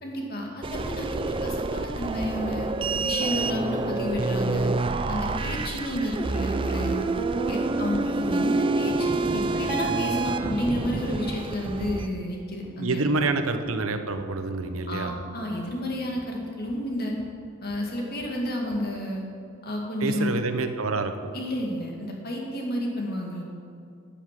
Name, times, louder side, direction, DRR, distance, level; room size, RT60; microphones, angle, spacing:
voice 1, 0.0-2.7 3.0-4.7 5.1-7.1 7.5-13.3 14.9-17.2 17.6-19.2 19.6-20.4 21.3-23.4, equal, 50° left, 0 dB, 2.2 m, -31 dB
sound 1, 0.6-12.1, right 3 dB, 25° right, 0.4 m, -27 dB
sound 2, 11.6-11.7 12.1-12.2 12.6-12.7 13.1-13.2 13.6-13.7 14.2-14.3 14.7-14.8 15.2-15.3 15.7-15.8 16.2-16.3 16.7-16.8 17.2-17.3 17.7-17.8 18.2-18.3 18.7-18.8, equal, 25° left, 2.4 m, -49 dB
voice 2, 12.8-15.1 20.0-21.3, right 3 dB, 80° right, 8 dB, 0.9 m, -27 dB
9.5 x 8.9 x 7.5 m, 2.5 s
head